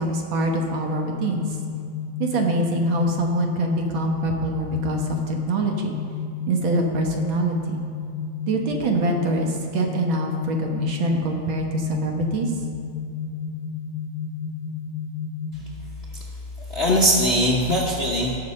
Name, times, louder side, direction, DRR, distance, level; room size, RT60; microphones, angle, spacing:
voice 1, 0.0-1.6 2.2-5.9 6.5-7.8 8.5-12.5, right 2 dB, 70° right, 1 dB, 2.0 m, -24 dB
sound 1, 0.6-15.6, left 6 dB, 80° left, 1.6 m, -32 dB
voice 2, 16.1-18.4, equal, 40° left, -4 dB, 0.9 m, -22 dB
17.5 x 6.7 x 4.3 m, 2.4 s
omnidirectional pair, 2.3 m